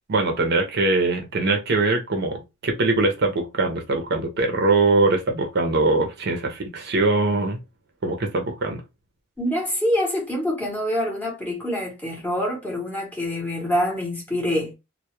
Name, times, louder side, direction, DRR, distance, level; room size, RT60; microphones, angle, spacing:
voice 1, 0.1-7.6 8.0-8.8, right 3 dB, 45° right, 0.5 m, -22 dB
voice 2, 9.4-14.7, left 1 dB, 10° left, 0.7 m, -25 dB
2.2 x 2.0 x 2.9 m
head